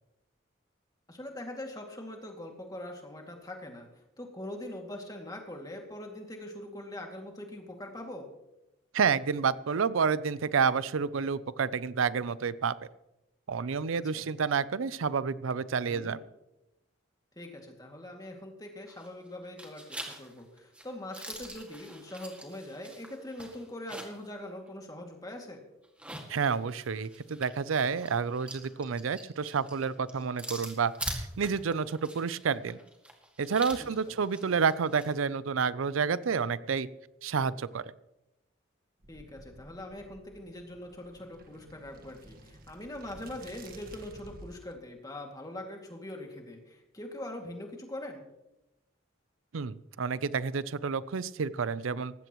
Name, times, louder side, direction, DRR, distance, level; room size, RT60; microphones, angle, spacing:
voice 1, 1.1-8.3 14.1-14.2 15.9-16.2 17.4-25.6 33.8-34.1 39.1-48.2, left 1 dB, 20° left, 2 dB, 2.3 m, -42 dB
voice 2, 8.9-12.7 13.5-16.2 26.3-32.8 33.4-36.9 37.2-37.9 49.5-52.1, right 6 dB, 80° right, 17 dB, 0.5 m, -29 dB
sound 1, 18.9-19.3 19.6-24.3 24.7-24.8 25.8-35.1, right 1 dB, 5° right, 2.0 m, -44 dB
sound 2, 39.0-44.7, right 1 dB, 45° right, 1.5 m, -52 dB
19.0 x 16.0 x 3.1 m, 0.93 s
head